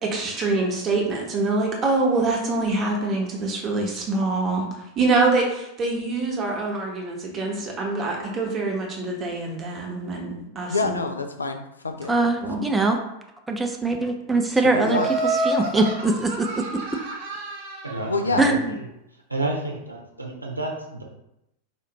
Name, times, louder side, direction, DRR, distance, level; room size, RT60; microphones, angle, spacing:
voice 1, 0.0-4.7 5.0-11.0 12.4-12.6, right 3 dB, 30° right, -1 dB, 0.9 m, -25 dB
voice 2, 10.7-12.1 14.7-15.1 18.1-18.5, left 3 dB, 75° left, 6 dB, 0.4 m, -26 dB
voice 3, 12.1-13.0 13.5-15.0 15.4-16.6 18.4-18.7, right 2 dB, 10° right, 2 dB, 0.4 m, -22 dB
Laughter, 14.8-18.1, right 2 dB, 55° right, 0.8 m, -28 dB
voice 4, 17.8-18.9 19.3-21.0, right 2 dB, 85° right, 0 dB, 0.6 m, -30 dB
4.2 x 2.5 x 2.9 m, 0.84 s
figure-of-eight pair, 90°, 0 cm